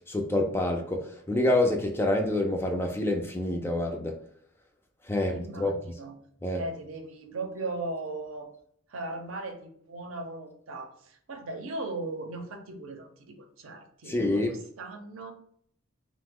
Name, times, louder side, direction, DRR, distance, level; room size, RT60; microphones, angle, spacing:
voice 1, 0.1-4.2 5.1-5.7 6.4-6.6 14.1-14.5, left 1 dB, 10° left, 2 dB, 0.3 m, -27 dB
voice 2, 5.2-6.2 6.5-8.5 8.9-15.3, right 2 dB, 75° right, 5 dB, 0.6 m, -38 dB
2.9 x 2.0 x 3.5 m, 0.64 s
head